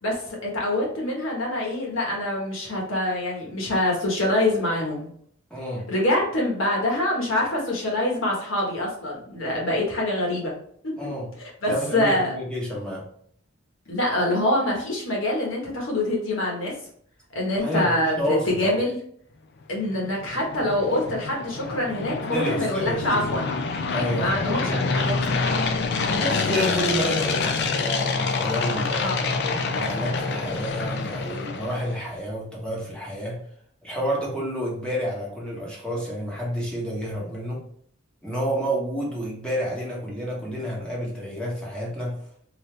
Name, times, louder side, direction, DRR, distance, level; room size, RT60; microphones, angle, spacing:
voice 1, 0.0-5.1 5.9-10.5 10.8-10.9 11.4-12.3 13.9-16.7 17.3-19.0 19.7-23.5 24.1-25.3 27.4-27.5 29.0-29.2, left 1 dB, 70° left, -2 dB, 1.4 m, -25 dB
voice 2, 5.5-5.9 11.0-11.3 11.6-13.0 17.5-18.8 22.3-23.3 23.9-24.4 26.1-33.4 33.8-37.7 38.2-42.2, equal, 5° left, -5 dB, 1.3 m, -29 dB
sound 1, 19.7-32.0, left 4 dB, 55° left, 0.5 m, -27 dB
3.9 x 2.8 x 3.3 m, 0.63 s
head